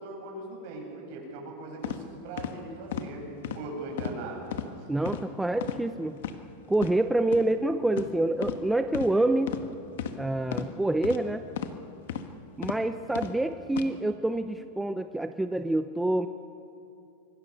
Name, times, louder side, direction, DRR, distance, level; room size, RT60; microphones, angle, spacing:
voice 1, 0.0-3.2 3.5-4.4 4.8-4.9 7.4-7.5, right 2 dB, 55° right, 0 dB, 7.7 m, -40 dB
sound 1, 1.8-2.0 2.4-2.5 2.9-3.1 3.4-3.6 4.0-4.2 4.5-4.7 5.1-5.2 5.6-5.8 6.2-6.4 6.8-6.9 7.3-7.5 7.9-8.1 8.4-8.6 8.9-9.1 9.5-9.6 10.0-10.2 10.5-10.7 11.0-11.2 11.6-11.8 12.1-12.3 12.6-12.8 13.2-13.3 13.7-13.9, left 10 dB, 75° left, 1.5 m, -33 dB
voice 2, 4.9-6.2 6.7-9.6 10.2-11.4 12.6-16.3, right 2 dB, 5° right, 9 dB, 0.6 m, -27 dB
25.5 x 23.0 x 6.8 m, 2.7 s
supercardioid pair, 145°, 0 cm